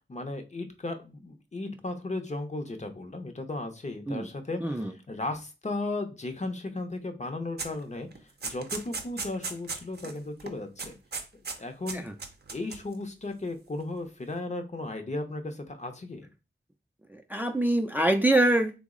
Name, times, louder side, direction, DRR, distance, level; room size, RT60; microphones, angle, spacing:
voice 1, 0.1-8.1 8.4-10.9 11.6-12.0 12.5-16.3, left 2 dB, 40° left, 5 dB, 0.6 m, -35 dB
voice 2, 4.6-4.9 11.9-12.1 17.1-18.7, right 1 dB, 10° right, 5 dB, 0.4 m, -25 dB
sound 1, 7.6-7.8 8.1-10.2 10.4-10.5 10.8-11.6 11.9-12.9, right 4 dB, 60° right, 0.5 m, -36 dB
3.5 x 2.0 x 3.6 m, 0.30 s
wide cardioid pair, 70°, 19 cm